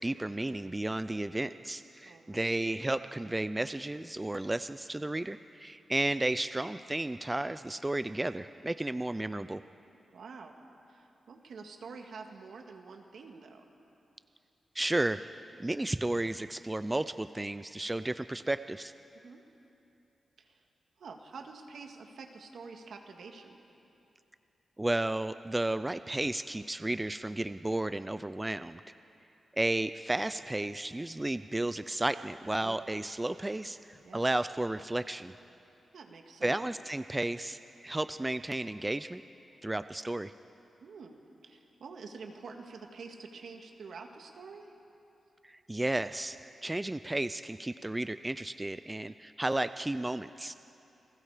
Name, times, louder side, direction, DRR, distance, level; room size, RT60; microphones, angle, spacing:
voice 1, 0.0-9.6 14.8-15.2 15.6-18.9 24.8-28.8 29.5-35.3 36.4-39.2 39.6-40.3 45.4-46.4 46.6-50.6, right 1 dB, 15° right, 12 dB, 0.4 m, -33 dB
voice 2, 2.1-2.6 10.1-10.6 10.9-13.7 19.2-19.4 20.4-20.6 21.0-23.6 32.6-32.8 34.0-34.2 35.9-36.6 40.8-44.7, right 4 dB, 75° right, 4 dB, 1.9 m, -47 dB
sound 1, 29.8-35.5, left 2 dB, 70° left, 4.8 m, -66 dB
29.5 x 20.5 x 5.0 m, 2.8 s
wide cardioid pair, 120°, 0 cm